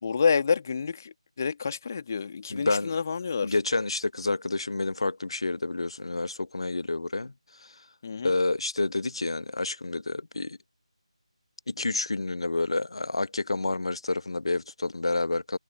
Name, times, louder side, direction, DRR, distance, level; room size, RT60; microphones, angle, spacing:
voice 1, 0.0-3.5 8.0-8.4, left 5 dB, 30° left, 2.2 m, -28 dB
voice 2, 2.5-3.0 3.4-7.3 7.6-7.7 8.2-10.6 11.7-15.6, left 2 dB, 55° left, 1.1 m, -29 dB
figure-of-eight pair, 160°, 3 cm